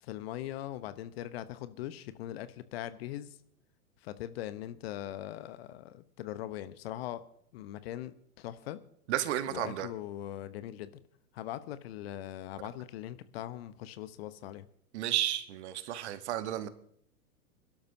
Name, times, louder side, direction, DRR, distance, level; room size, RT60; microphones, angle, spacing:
voice 1, 0.0-3.3 4.0-7.2 7.5-8.8 9.5-10.9 11.3-14.7, left 13 dB, 40° left, 13 dB, 0.9 m, -41 dB
voice 2, 9.1-9.9 14.9-16.7, right 12 dB, 45° right, 12 dB, 1.2 m, -32 dB
27.0 x 12.0 x 2.7 m, 0.66 s
figure-of-eight pair, 105°, 46 cm